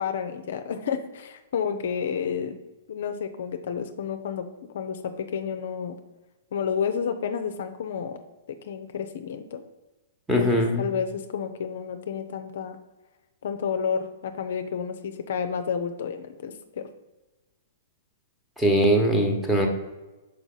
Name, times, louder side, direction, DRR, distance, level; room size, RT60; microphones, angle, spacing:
voice 1, 0.0-2.6 2.9-4.5 4.7-6.0 6.5-8.2 8.5-9.6 10.4-12.8 13.4-16.9, left 7 dB, 60° left, 7 dB, 0.5 m, -30 dB
voice 2, 10.3-10.9 18.6-19.7, equal, 5° right, 2 dB, 1.2 m, -21 dB
5.9 x 4.8 x 3.9 m, 1.1 s
hypercardioid pair, 115°, 0 cm